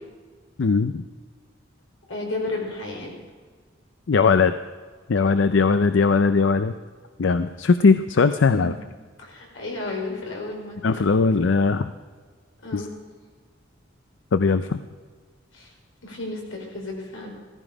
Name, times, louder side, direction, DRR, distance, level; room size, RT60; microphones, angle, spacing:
voice 1, 0.6-1.0 4.1-4.5 5.1-6.7 7.2-8.7 10.8-11.9 12.7-12.9 14.3-14.8, left 4 dB, 70° left, 11 dB, 0.5 m, -19 dB
voice 2, 2.1-3.1 8.5-8.7 9.2-11.2 12.6-12.9 15.5-15.7 16.0-17.3, left 2 dB, 90° left, 0 dB, 4.6 m, -33 dB
16.0 x 14.5 x 5.0 m, 1.5 s
head